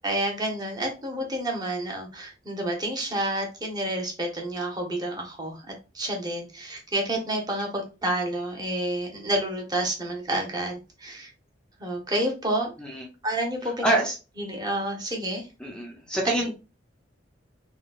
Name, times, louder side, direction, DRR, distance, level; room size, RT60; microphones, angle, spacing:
voice 1, 0.0-11.3 11.8-12.7 13.2-14.0 14.4-15.5 16.2-16.5, right 1 dB, 20° right, 1 dB, 0.9 m, -29 dB
voice 2, 13.8-14.2 15.6-16.5, right 1 dB, 5° left, -1 dB, 0.5 m, -26 dB
3.7 x 2.2 x 2.3 m, 0.30 s
head